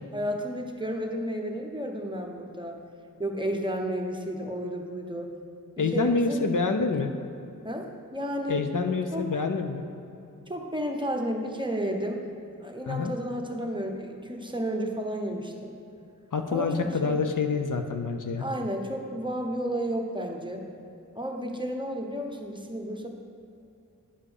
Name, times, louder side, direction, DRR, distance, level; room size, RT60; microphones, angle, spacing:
voice 1, 0.1-2.8 3.2-5.3 5.8-6.5 7.6-8.6 9.1-9.3 10.5-12.2 12.6-15.7 16.5-17.2 18.4-20.7 21.1-23.1, equal, 15° right, 2 dB, 1.0 m, -32 dB
voice 2, 5.8-7.1 8.5-9.8 12.9-13.1 16.3-18.5, left 4 dB, 65° left, 6 dB, 0.6 m, -27 dB
10.0 x 5.0 x 6.5 m, 2.7 s
wide cardioid pair, 60°, 34 cm